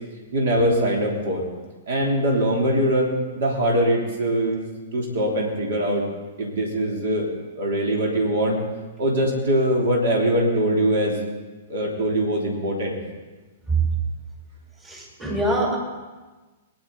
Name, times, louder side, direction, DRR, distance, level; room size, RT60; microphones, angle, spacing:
voice 1, 0.3-1.4 1.9-6.0 6.4-7.3 7.5-8.6 9.0-11.2 11.7-13.0, right 1 dB, 60° right, -1 dB, 3.2 m, -22 dB
voice 2, 14.8-15.8, right 3 dB, 20° right, -2 dB, 5.4 m, -23 dB
21.5 x 10.5 x 4.1 m, 1.2 s
figure-of-eight pair, 110°, 0 cm